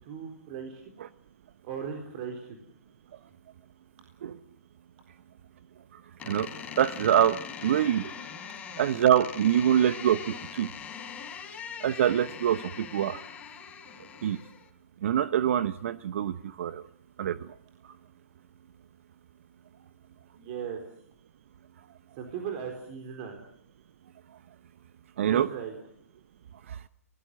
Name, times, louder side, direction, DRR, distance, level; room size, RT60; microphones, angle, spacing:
voice 1, 0.0-0.8 1.6-2.6 20.3-20.8 22.2-23.4 25.2-25.7, right 7 dB, 40° right, 3 dB, 4.1 m, -37 dB
voice 2, 5.9-6.5 6.8-8.1 8.8-10.7 11.8-13.2 14.2-14.4 15.0-16.8 17.2-17.5 25.2-25.5 26.7-26.8, right 10 dB, 55° right, 14 dB, 0.9 m, -25 dB
Door, 6.2-14.7, left 7 dB, 15° left, 3.6 m, -42 dB
27.5 x 19.0 x 7.7 m, 0.64 s
hypercardioid pair, 135°, 8 cm